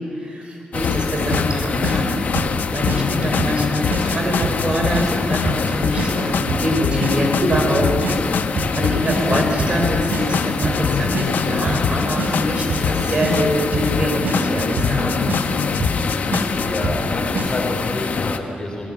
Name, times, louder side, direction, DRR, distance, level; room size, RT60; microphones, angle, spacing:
voice 1, 0.1-2.2 2.7-7.9 8.3-15.3, equal, 35° right, 1 dB, 5.6 m, -24 dB
sound 1, 0.7-18.4, left 5 dB, 55° left, 1.4 m, -25 dB
sound 2, 0.8-16.8, left 7 dB, 80° left, 0.8 m, -25 dB
sound 3, 1.3-1.5 1.8-2.0 2.4-2.6 2.9-3.0 3.4-3.6 3.9-4.0 4.4-4.6 4.9-5.1 5.5-5.7 6.0-6.1 6.5-6.7 7.0-7.1 7.5-7.7 8.0-8.2 8.6-8.8 9.1-9.2 9.6-9.8 10.1-10.2 10.6-10.9 11.1-11.3 11.7-11.9 12.2-12.3 12.7-12.9 13.2-13.3 13.7-14.0 14.2-14.4 14.8-15.0 15.3-15.4 15.8-16.0 16.3-16.4 16.8-17.1 17.4-17.5, right 3 dB, 75° right, 5.2 m, -24 dB
voice 2, 16.3-18.9, left 2 dB, 30° left, 0 dB, 4.7 m, -29 dB
28.0 x 19.0 x 9.1 m, 2.5 s
wide cardioid pair, 140°, 3 cm